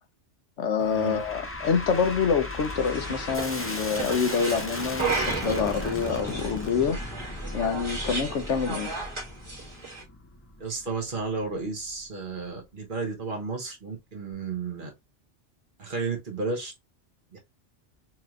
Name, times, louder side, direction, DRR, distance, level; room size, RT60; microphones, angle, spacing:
voice 1, 0.6-7.0 7.5-8.9, left 6 dB, 80° left, 1.1 m, -26 dB
sound 1, 0.8-12.1, left 2 dB, 15° left, 0.5 m, -37 dB
sound 2, 2.7-10.0, right 4 dB, 25° right, 1.5 m, -34 dB
voice 2, 10.6-14.9 15.8-16.7 17.3-17.4, right 4 dB, 50° right, 1.2 m, -32 dB
4.4 x 3.0 x 2.4 m
omnidirectional pair, 1.2 m